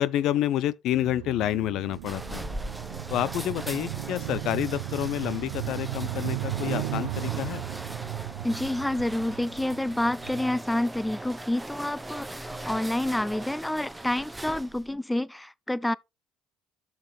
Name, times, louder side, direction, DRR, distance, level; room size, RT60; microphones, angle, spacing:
voice 1, 0.0-2.4 3.1-7.6, left 12 dB, 65° left, 0.4 m, -28 dB
sound 1, 0.9-10.4, right 18 dB, 80° right, 0.4 m, -35 dB
sound 2, 1.4-14.9, right 1 dB, 10° right, 0.9 m, -40 dB
voice 2, 8.4-15.9, left 1 dB, 10° left, 0.5 m, -28 dB
12.5 x 5.9 x 3.2 m
hypercardioid pair, 60°, 0 cm